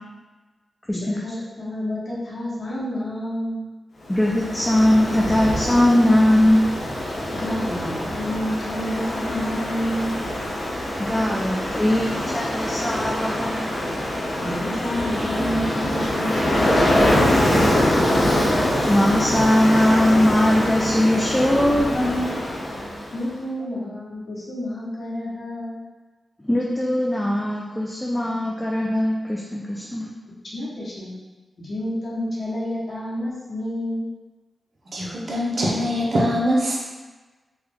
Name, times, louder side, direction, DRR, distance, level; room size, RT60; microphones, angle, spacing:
voice 1, 0.9-3.7 7.3-10.2 14.4-17.6 23.1-25.9 30.5-31.1 31.6-34.1, left 1 dB, 60° left, -8 dB, 1.0 m, -29 dB
Ocean, 4.1-23.2, left 1 dB, 80° left, 0.8 m, -24 dB
voice 2, 4.1-6.6 11.0-13.7 18.9-22.4 26.4-30.1, left 1 dB, 15° left, -3 dB, 0.4 m, -20 dB
voice 3, 34.9-36.8, equal, 55° right, -4 dB, 0.7 m, -22 dB
3.1 x 2.3 x 3.4 m, 1.3 s
cardioid pair, 70°, 0 cm